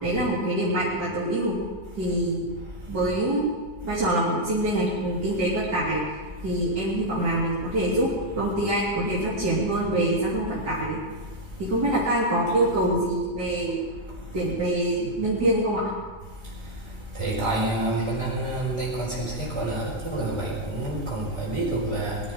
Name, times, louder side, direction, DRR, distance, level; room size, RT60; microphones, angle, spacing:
voice 1, 0.0-1.5 2.0-2.5 2.9-3.5 3.8-6.0 6.4-8.1 8.4-11.0 11.7-13.8 14.3-15.9, right 1 dB, 75° right, -9 dB, 3.8 m, -25 dB
voice 2, 17.2-19.1 19.4-22.2, right 2 dB, 15° right, -8 dB, 4.5 m, -27 dB
21.0 x 12.0 x 5.0 m, 1.4 s
omnidirectional pair, 1.8 m